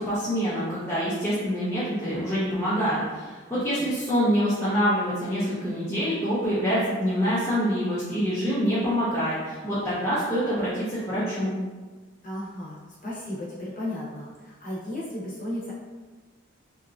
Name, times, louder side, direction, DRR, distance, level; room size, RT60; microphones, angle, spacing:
voice 1, 0.0-11.5, equal, 10° left, -11 dB, 0.5 m, -26 dB
voice 2, 3.5-3.9 12.2-15.7, left 1 dB, 40° left, -7 dB, 0.8 m, -35 dB
2.9 x 2.4 x 2.4 m, 1.3 s
head